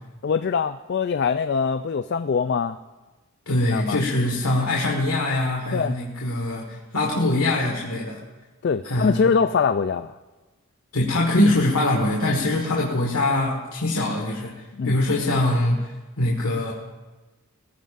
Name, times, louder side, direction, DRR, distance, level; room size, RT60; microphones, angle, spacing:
voice 1, 0.2-2.8 3.7-4.0 5.7-5.9 8.6-10.1 14.8-15.0, left 5 dB, 50° left, 9 dB, 0.3 m, -23 dB
voice 2, 3.5-8.2 8.8-9.2 10.9-16.7, left 1 dB, 80° left, -2 dB, 1.6 m, -23 dB
21.5 x 14.5 x 2.5 m, 1.2 s
head